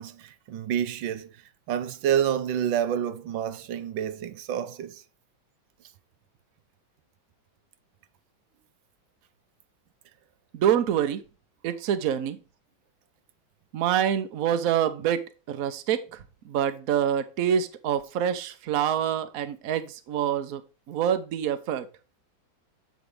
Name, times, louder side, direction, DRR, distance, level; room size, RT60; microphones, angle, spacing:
voice 1, 0.0-1.4 1.7-5.0, right 9 dB, 90° right, 1.4 m, -28 dB
voice 2, 10.5-11.2 11.6-12.4 13.7-15.2 15.5-16.0 16.5-20.6 20.9-21.9, right 9 dB, 55° right, 1.1 m, -26 dB
8.3 x 5.1 x 4.9 m
omnidirectional pair, 2.1 m